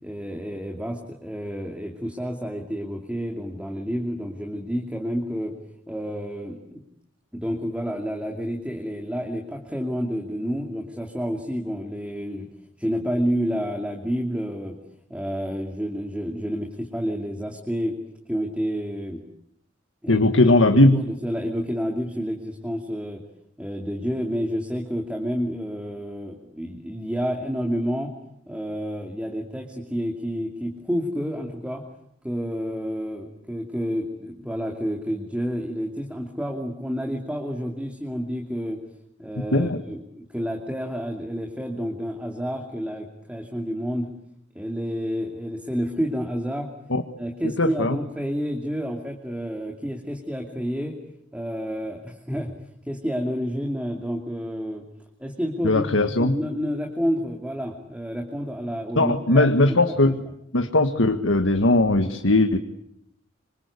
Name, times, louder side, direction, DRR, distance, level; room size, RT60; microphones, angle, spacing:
voice 1, 0.0-5.6 5.9-6.8 7.3-12.5 12.8-14.8 15.1-18.0 18.3-19.2 20.0-23.2 23.6-28.1 28.5-31.8 32.2-38.8 39.2-44.1 44.5-46.7 47.2-51.0 51.3-52.5 52.9-54.8 55.2-59.9, equal, 5° right, 2 dB, 2.7 m, -29 dB
voice 2, 20.1-21.0 39.5-39.8 46.9-47.0 47.6-48.0 55.6-56.3 58.9-60.2 60.5-62.6, left 2 dB, 85° left, 7 dB, 1.7 m, -19 dB
26.5 x 26.0 x 8.4 m, 0.75 s
head